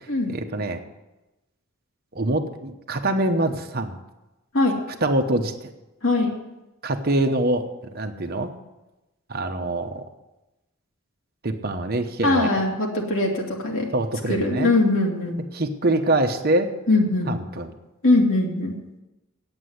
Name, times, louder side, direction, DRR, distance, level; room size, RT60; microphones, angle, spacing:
voice 1, 0.3-0.8 2.1-4.0 5.0-5.5 6.8-7.6 7.9-8.5 9.3-10.0 11.4-12.5 13.9-14.7 15.5-16.7 17.3-17.7, right 1 dB, 45° right, 5 dB, 1.0 m, -24 dB
voice 2, 12.2-13.9 14.3-15.5 16.9-17.4 18.0-18.7, left 2 dB, 60° left, -1 dB, 2.4 m, -21 dB
8.9 x 8.5 x 9.5 m, 1.0 s
head